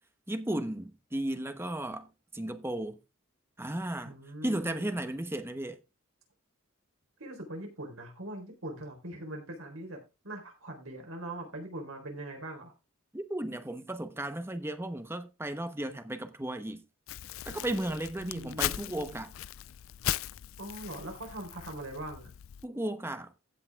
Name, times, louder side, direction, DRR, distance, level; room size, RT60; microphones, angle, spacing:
voice 1, 0.3-2.1 2.3-3.0 3.6-4.2 4.4-5.8 13.1-16.8 17.5-19.3 22.6-23.3, right 1 dB, 10° right, 1.0 m, -35 dB
voice 2, 4.0-4.9 7.2-12.7 18.2-19.1 20.6-22.3, right 1 dB, 85° right, 4.0 m, -42 dB
Crumpling crinkling, 17.1-22.7, left 12 dB, 75° left, 0.4 m, -38 dB
16.0 x 5.6 x 3.6 m
head